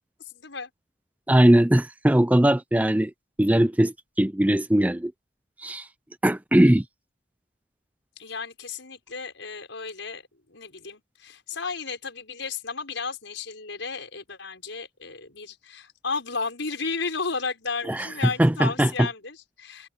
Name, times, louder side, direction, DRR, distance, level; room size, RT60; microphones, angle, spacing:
voice 1, 0.3-0.7 8.2-19.9, left 4 dB, 80° left, 5.8 m, -33 dB
voice 2, 1.3-3.1 3.4-5.1 5.6-5.9 6.2-6.8 17.9-18.1 18.4-19.1, right 1 dB, 10° right, 0.4 m, -20 dB
head